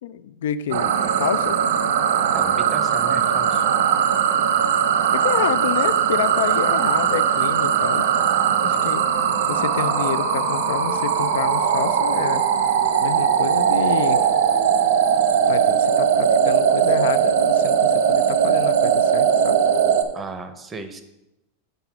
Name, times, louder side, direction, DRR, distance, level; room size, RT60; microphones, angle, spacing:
voice 1, 0.0-1.6 5.1-8.1 8.6-9.0 9.5-12.4 13.0-14.3 15.5-19.6, left 9 dB, 85° left, 14 dB, 0.4 m, -28 dB
sound 1, 0.7-20.0, right 8 dB, 85° right, 0.9 m, -19 dB
voice 2, 2.3-3.6 20.1-21.0, right 4 dB, 15° right, 9 dB, 0.6 m, -34 dB
9.0 x 3.9 x 5.9 m, 0.91 s
supercardioid pair, 170°, 0 cm